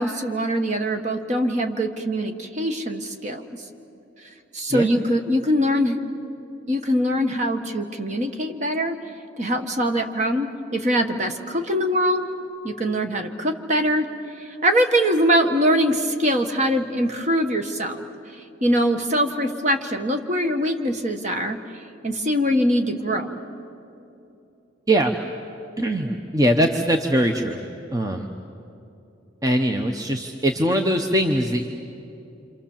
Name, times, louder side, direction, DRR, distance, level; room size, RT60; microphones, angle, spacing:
voice 1, 0.0-3.4 4.5-6.0 6.7-9.0 9.4-12.3 12.6-14.1 14.4-18.0 18.6-21.6 22.0-23.3, equal, 35° right, 5 dB, 1.4 m, -22 dB
voice 2, 25.8-27.6 27.9-28.3 29.4-31.7, equal, 20° right, 3 dB, 0.9 m, -21 dB
27.5 x 27.0 x 7.3 m, 2.8 s
head